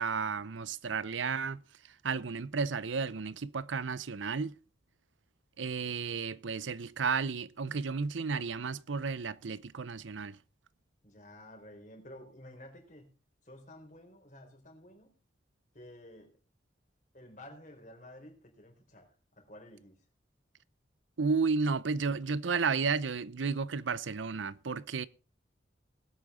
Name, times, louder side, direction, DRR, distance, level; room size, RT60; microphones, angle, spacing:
voice 1, 0.0-4.6 5.6-10.4 21.2-25.1, right 5 dB, 85° right, 0.7 m, -33 dB
voice 2, 11.0-13.1 13.4-15.2 15.7-16.4 17.1-20.0, left 1 dB, 40° left, 4.3 m, -52 dB
20.0 x 8.6 x 3.8 m
head